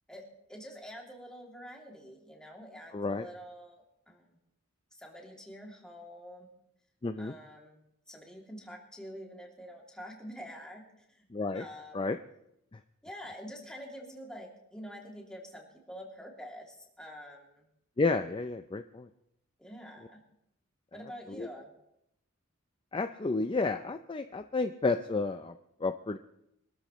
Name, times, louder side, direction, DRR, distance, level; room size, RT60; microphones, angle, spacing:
voice 1, 0.1-4.4 4.9-6.5 7.2-10.8 11.1-11.3 11.5-12.1 13.0-17.6 19.6-20.2 20.9-21.7, equal, 5° left, -2 dB, 2.7 m, -47 dB
voice 2, 2.9-3.3 7.0-7.3 11.3-11.6 11.9-12.2 18.0-19.1 21.3-21.5 22.9-25.5 25.8-26.2, left 3 dB, 25° left, 8 dB, 0.5 m, -31 dB
24.5 x 13.0 x 3.1 m, 0.79 s
head